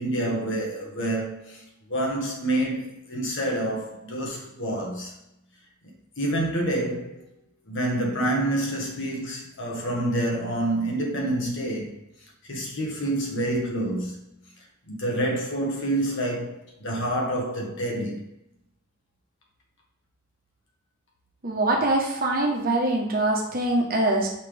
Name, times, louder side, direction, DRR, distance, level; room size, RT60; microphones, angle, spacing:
voice 1, 0.0-1.6 1.9-5.1 6.2-7.2 7.7-11.9 12.4-14.1 14.9-18.2, right 1 dB, 65° left, 1.6 m, -27 dB
voice 2, 21.4-24.3, right 2 dB, 45° right, 1.2 m, -23 dB
5.8 x 5.6 x 3.5 m
head